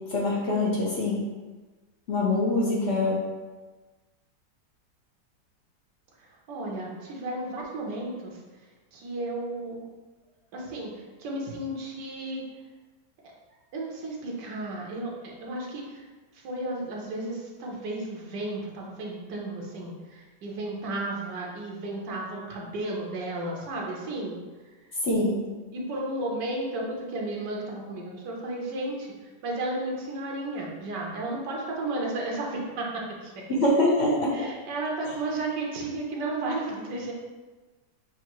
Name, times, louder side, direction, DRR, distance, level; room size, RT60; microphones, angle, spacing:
voice 1, 0.1-1.2 2.1-3.2 25.0-25.4 33.5-34.5, left 1 dB, 50° left, -4 dB, 0.8 m, -24 dB
voice 2, 6.2-8.4 8.9-9.9 10.5-12.4 13.7-16.1 16.3-24.4 25.7-32.9 33.2-33.3 34.3-37.1, right 2 dB, 75° right, -2 dB, 1.5 m, -33 dB
6.9 x 2.6 x 3.0 m, 1.3 s
omnidirectional pair, 1.9 m